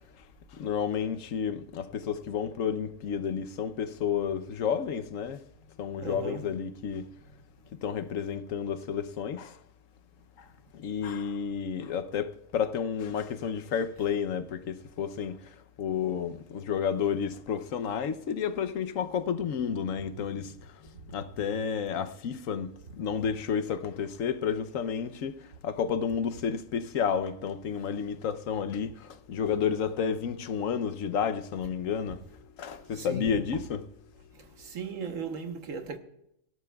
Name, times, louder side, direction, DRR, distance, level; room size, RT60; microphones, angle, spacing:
voice 1, 0.6-5.4 5.8-7.1 7.8-9.5 10.7-15.4 15.8-20.5 21.1-25.4 25.6-32.2 32.6-33.8, left 7 dB, 85° left, 1.2 m, -31 dB
voice 2, 6.0-6.5 32.8-33.4 34.3-36.0, right 4 dB, 85° right, 1.6 m, -37 dB
24.0 x 12.5 x 2.3 m
omnidirectional pair, 1.3 m